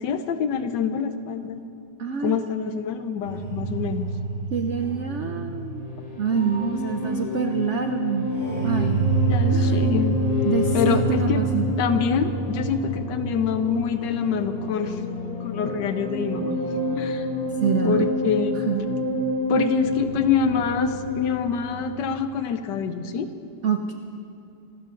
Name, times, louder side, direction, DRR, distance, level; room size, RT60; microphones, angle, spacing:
voice 1, 0.0-1.6 2.2-4.1 9.3-10.2 10.7-11.4 11.8-15.0 15.4-16.5 16.9-17.3 17.8-18.6 19.5-23.3, left 7 dB, 70° left, 9 dB, 1.4 m, -25 dB
voice 2, 2.0-2.4 4.5-5.9 6.2-8.3 8.6-9.1 9.5-9.9 10.4-11.7 17.6-18.0 18.7-18.9 23.6-23.9, right 6 dB, 70° right, 5 dB, 0.7 m, -26 dB
sound 1, 3.2-22.1, right 1 dB, 50° left, 4.9 m, -27 dB
sound 2, 4.9-19.5, left 6 dB, 30° left, 0.8 m, -37 dB
26.5 x 13.0 x 3.8 m, 2.5 s
omnidirectional pair, 2.0 m